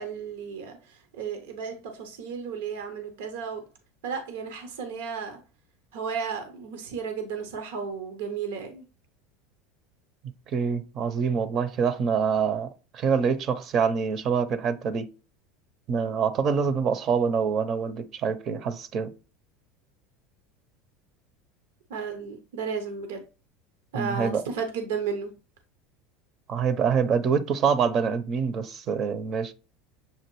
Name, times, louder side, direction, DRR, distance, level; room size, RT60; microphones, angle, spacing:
voice 1, 0.0-3.6 4.0-5.4 5.9-8.8 21.9-23.2 23.9-25.3, right 6 dB, 80° right, 0.7 m, -33 dB
voice 2, 10.5-15.1 15.9-19.1 23.9-24.4 26.5-29.5, right 6 dB, 45° right, 0.6 m, -25 dB
6.9 x 2.5 x 3.0 m
supercardioid pair, 100°, 0 cm